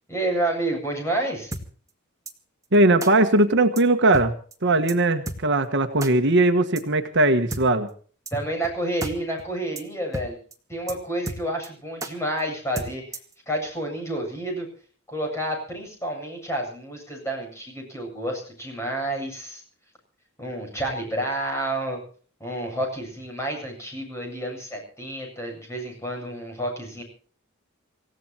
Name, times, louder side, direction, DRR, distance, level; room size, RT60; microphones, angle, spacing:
voice 1, 0.1-1.5 8.3-10.4 10.7-13.0 13.5-14.7 15.1-19.6 20.4-22.0 22.4-27.0, right 1 dB, 15° left, 1 dB, 7.9 m, -29 dB
sound 1, 1.5-1.6 2.3-2.4 3.0-3.1 3.8-3.9 4.1-4.3 4.5-4.6 4.9-5.0 5.3-5.4 6.0-6.1 6.8-6.9 7.5-7.6 8.3-8.4 8.6-8.7 9.0-9.1 9.4-9.5 9.8-9.9 10.1-10.3 10.5-10.6 10.9-11.0 11.3-11.7 12.0-12.1 12.8-13.3, right 1 dB, 15° right, 2.0 m, -32 dB
voice 2, 2.7-4.3 4.6-7.9, right 2 dB, 60° right, 7 dB, 1.4 m, -19 dB
27.0 x 16.0 x 2.9 m, 0.44 s
head